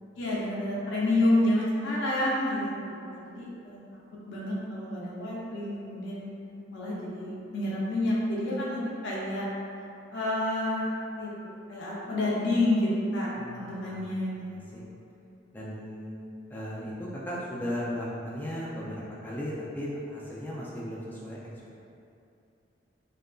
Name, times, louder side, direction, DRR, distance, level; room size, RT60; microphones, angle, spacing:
voice 1, 0.2-2.7 3.1-3.8 4.3-6.3 6.7-9.5 10.1-14.4 14.7-15.0, left 1 dB, 65° left, -6 dB, 0.5 m, -29 dB
voice 2, 13.4-14.0 14.4-14.8 15.5-16.2 16.5-21.4, equal, 10° left, -6 dB, 0.3 m, -36 dB
2.7 x 2.5 x 2.2 m, 2.6 s
head